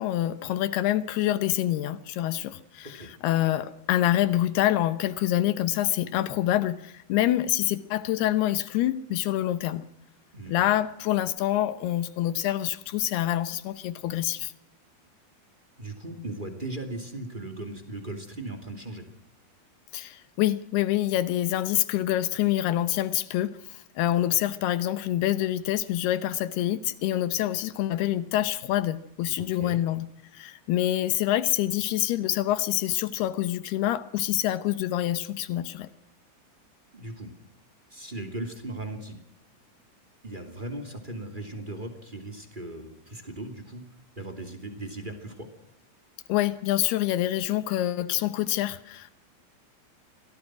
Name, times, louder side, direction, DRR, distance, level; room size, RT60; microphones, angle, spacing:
voice 1, 0.0-9.8 10.5-14.5 19.9-30.1 30.3-35.9 46.3-49.1, left 13 dB, 75° left, 2.5 m, -26 dB
voice 2, 15.8-19.1 29.4-29.8 36.9-37.3 37.9-39.2 40.2-43.9 44.1-45.5, right 1 dB, 15° right, 1.6 m, -38 dB
25.5 x 17.5 x 6.2 m
omnidirectional pair, 5.5 m